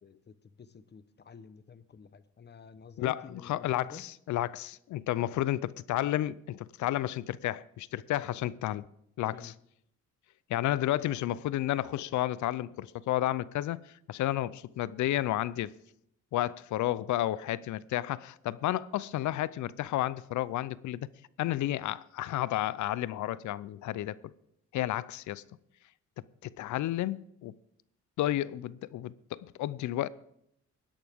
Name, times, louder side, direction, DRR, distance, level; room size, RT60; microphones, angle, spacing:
voice 1, 0.0-4.0 9.3-9.5, left 6 dB, 35° left, 0.9 m, -50 dB
voice 2, 3.0-8.8 9.2-9.5 10.5-13.8 14.1-15.7 16.3-21.1 21.4-24.2 24.7-25.4 26.4-27.5 28.2-30.1, left 14 dB, 75° left, 0.6 m, -31 dB
19.0 x 11.0 x 3.6 m
cardioid pair, 90°, 30 cm